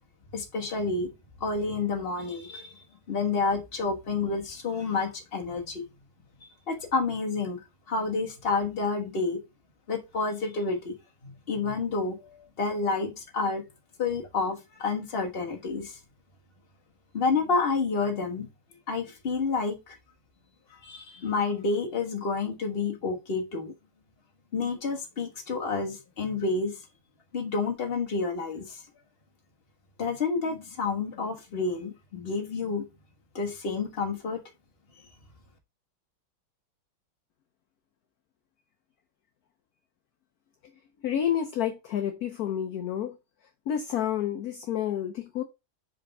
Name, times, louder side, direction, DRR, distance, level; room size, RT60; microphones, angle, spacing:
voice 1, 0.3-1.1 1.4-5.8 6.4-7.6 7.9-9.4 9.9-10.9 11.2-13.6 14.0-16.0 17.1-18.5 18.9-20.0 20.8-23.7 24.5-26.8 27.3-28.8 30.0-32.8 33.3-34.4, left 4 dB, 30° left, 1.4 m, -29 dB
voice 2, 41.0-43.2 43.7-45.4, left 10 dB, 60° left, 1.0 m, -29 dB
5.0 x 4.5 x 5.3 m
omnidirectional pair, 2.2 m